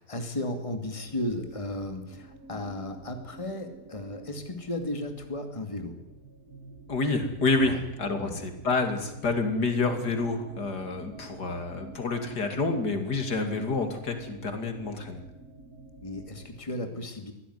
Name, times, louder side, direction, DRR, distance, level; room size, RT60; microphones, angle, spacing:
voice 1, 0.0-6.0 7.6-7.8 8.2-8.4 16.0-17.3, left 1 dB, 20° left, 6 dB, 2.5 m, -35 dB
sound 1, 0.7-16.6, right 2 dB, 65° right, 3.4 m, -48 dB
voice 2, 6.9-15.2, left 3 dB, 85° left, 6 dB, 3.3 m, -28 dB
23.0 x 16.0 x 9.6 m, 0.96 s
omnidirectional pair, 1.7 m